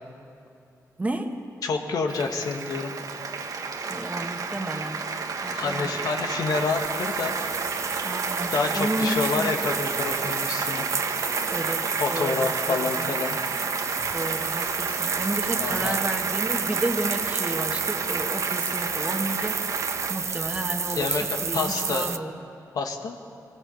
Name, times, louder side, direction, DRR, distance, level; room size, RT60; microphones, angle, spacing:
voice 1, 1.0-1.3 3.9-5.0 5.4-5.9 8.0-9.6 11.5-13.1 14.1-19.6 20.1-22.3, right 2 dB, 25° right, 4 dB, 1.7 m, -32 dB
voice 2, 1.6-2.9 5.5-7.4 8.5-10.9 12.0-13.4 15.6-16.0 20.9-22.1 22.7-23.2, left 4 dB, 80° left, 3 dB, 1.8 m, -28 dB
Applause, 2.1-20.1, right 4 dB, 70° right, 1.4 m, -31 dB
sound 1, 6.5-22.2, right 6 dB, 50° right, 0.6 m, -31 dB
24.0 x 16.5 x 7.2 m, 2.8 s
wide cardioid pair, 105°, 6 cm